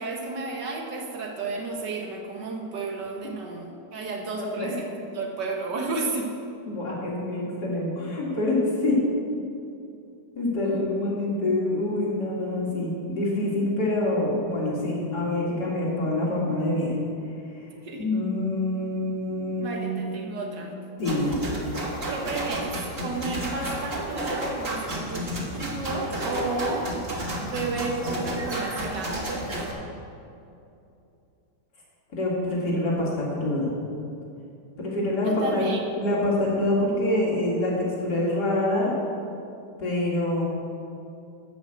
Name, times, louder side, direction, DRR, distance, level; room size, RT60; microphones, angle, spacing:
voice 1, 0.0-4.8 5.1-6.3 10.6-10.8 17.8-18.1 19.6-20.7 22.1-27.0 27.4-29.3 35.2-35.8, right 3 dB, 90° right, 1 dB, 1.9 m, -32 dB
voice 2, 4.4-4.7 6.7-9.0 10.3-17.0 18.0-20.2 21.0-21.3 32.1-33.7 34.8-35.6 36.0-38.9 39.8-40.4, left 1 dB, 70° left, -5 dB, 2.9 m, -26 dB
sound 1, 21.0-29.7, right 1 dB, 35° right, 1.7 m, -31 dB
12.0 x 5.3 x 7.9 m, 2.7 s
omnidirectional pair, 1.8 m